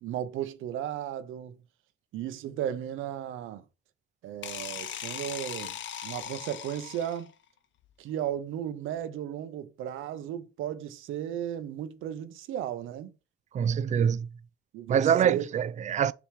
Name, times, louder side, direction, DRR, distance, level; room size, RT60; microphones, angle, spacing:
voice 1, 0.0-1.6 2.1-3.6 4.2-5.8 6.0-7.3 8.0-13.1 14.0-14.1 14.7-15.4, right 10 dB, 85° right, 0.8 m, -35 dB
sound 1, 4.4-7.3, left 10 dB, 70° left, 0.8 m, -39 dB
voice 2, 13.5-14.3 14.9-16.1, right 8 dB, 35° right, 0.4 m, -25 dB
6.8 x 3.0 x 4.7 m
cardioid pair, 90°, 20 cm